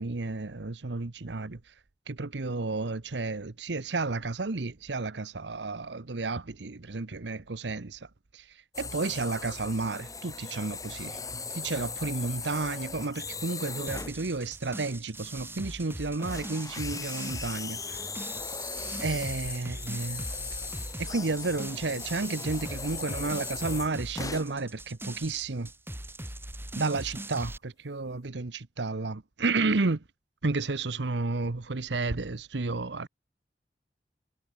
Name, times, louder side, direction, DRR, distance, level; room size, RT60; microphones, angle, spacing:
voice 1, 0.0-1.6 2.1-8.1 8.3-8.5 8.8-11.2 11.5-18.0 19.0-20.2 21.0-25.7 26.7-30.0 30.4-33.1, right 3 dB, 80° right, 1.0 m, -32 dB
sound 1, 8.7-14.2 15.5-15.7 16.2-24.6 25.2-25.5 26.1-26.2 26.6-26.7, left 4 dB, 20° left, 6.8 m, -38 dB
sound 2, 13.9-27.6, right 1 dB, 15° right, 6.8 m, -41 dB
head